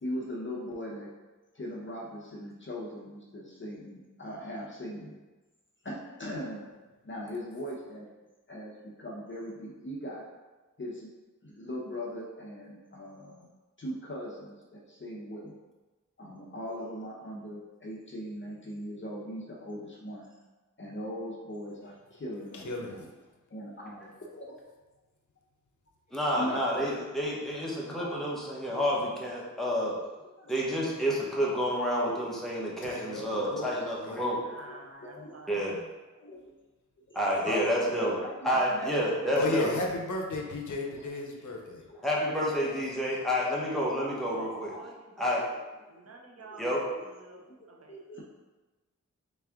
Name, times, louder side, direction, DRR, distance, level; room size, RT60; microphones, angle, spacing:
voice 1, 0.0-1.1 1.5-5.1 5.8-6.6 7.0-8.1 8.5-10.2 10.8-11.1 11.4-13.5 13.8-15.6 16.2-20.3 20.8-23.1 23.5-24.6 26.4-26.7 27.9-28.1 29.5-29.7 30.4-30.5 30.8-30.9 33.7-33.8 34.1-34.2 34.7-35.7 36.1-36.5 37.5-39.8 41.9-42.4 43.3-43.4 44.2-44.9 46.4-46.6 46.9-47.0 47.3-47.5 47.9-48.2, equal, 40° left, -3 dB, 0.8 m, -40 dB
voice 2, 22.5-23.1 32.8-33.7 34.0-34.2 39.4-41.9, left 2 dB, 75° left, 1 dB, 0.7 m, -34 dB
voice 3, 26.1-29.9 30.5-34.4 35.5-35.8 37.1-38.1 38.4-39.7 42.0-44.7 45.2-45.4 46.6-46.8, equal, ahead, -5 dB, 1.0 m, -29 dB
voice 4, 34.4-35.7 43.7-45.6 45.9-47.4 47.7-48.0, right 3 dB, 50° right, 0 dB, 0.7 m, -48 dB
3.4 x 3.2 x 3.5 m, 1.2 s
wide cardioid pair, 75°, 31 cm